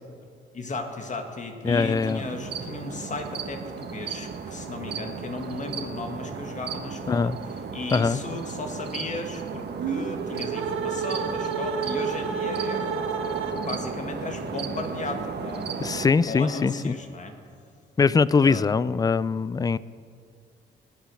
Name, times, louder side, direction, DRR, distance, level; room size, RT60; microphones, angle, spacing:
voice 1, 0.5-7.3 7.7-12.9 13.6-17.3 18.4-18.7, left 2 dB, 40° left, 5 dB, 1.9 m, -35 dB
voice 2, 1.6-2.2 7.1-7.4 7.9-8.2 15.8-17.0 18.0-19.8, left 5 dB, 20° left, 19 dB, 0.3 m, -22 dB
sound 1, 1.6-16.1, right 5 dB, 55° right, 1.6 m, -35 dB
sound 2, 9.7-13.9, right 6 dB, 80° right, 1.4 m, -30 dB
20.0 x 8.3 x 6.3 m, 2.3 s
cardioid pair, 90°, 20 cm